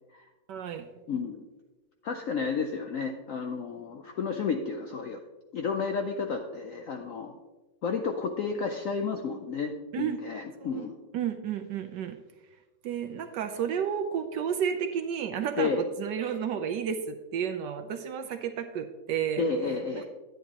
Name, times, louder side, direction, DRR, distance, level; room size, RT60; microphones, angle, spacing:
voice 1, 0.5-0.9 9.9-10.2 10.6-10.9 11.1-12.2 12.8-19.4 20.0-20.1, right 8 dB, 70° right, 8 dB, 1.1 m, -32 dB
voice 2, 1.1-1.4 2.0-5.2 5.5-7.4 7.8-10.9 15.6-15.8 19.4-20.0, left 5 dB, 75° left, 4 dB, 0.7 m, -31 dB
10.5 x 9.2 x 2.9 m, 1.2 s
omnidirectional pair, 2.1 m